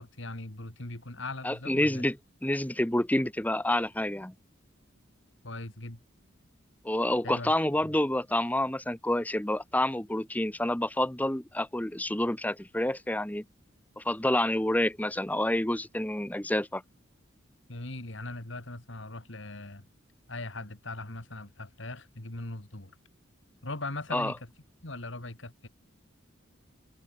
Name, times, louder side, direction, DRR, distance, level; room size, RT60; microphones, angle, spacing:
voice 1, 0.0-2.0 5.4-6.0 7.2-7.5 17.7-19.9 20.3-22.9 23.6-24.5 24.8-25.7, left 2 dB, 65° left, 2.8 m, -40 dB
voice 2, 1.4-2.2 2.4-4.3 6.8-13.4 14.0-16.8 24.1-24.3, left 1 dB, 10° left, 1.0 m, -28 dB
head